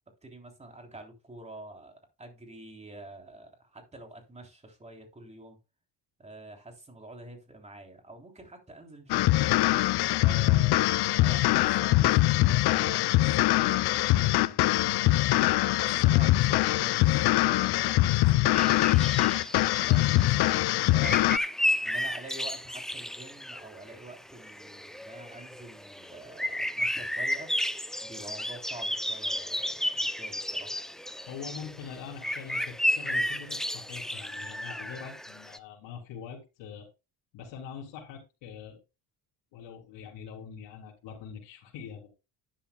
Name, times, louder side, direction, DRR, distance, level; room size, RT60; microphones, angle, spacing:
voice 1, 0.2-5.6 6.2-9.7 10.2-14.7 15.2-19.0 19.6-20.6 20.9-21.2 21.8-27.5 28.0-30.7, right 2 dB, 15° right, 3.4 m, -47 dB
sound 1, 9.1-21.4, left 17 dB, 65° left, 0.6 m, -23 dB
sound 2, 18.5-35.6, left 1 dB, ahead, 0.5 m, -33 dB
voice 2, 31.3-36.9 37.3-38.8 39.5-42.1, left 7 dB, 90° left, 3.5 m, -43 dB
11.5 x 10.5 x 2.3 m
cardioid pair, 130°, 43 cm